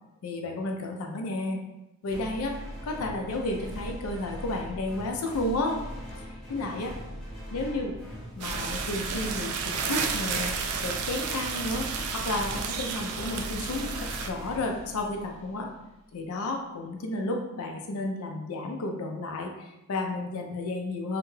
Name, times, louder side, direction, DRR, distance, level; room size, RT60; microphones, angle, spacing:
voice 1, 0.2-1.6 2.0-2.5 2.8-5.8 6.2-6.9 7.5-8.0 8.4-11.9 12.1-15.7 16.1-21.2, left 2 dB, 80° left, 2 dB, 0.4 m, -32 dB
sound 1, 2.1-15.7, equal, ahead, 0.5 m, -40 dB
sound 2, 8.4-14.3, right 5 dB, 85° right, 0.4 m, -32 dB
2.8 x 2.2 x 3.1 m, 0.94 s
head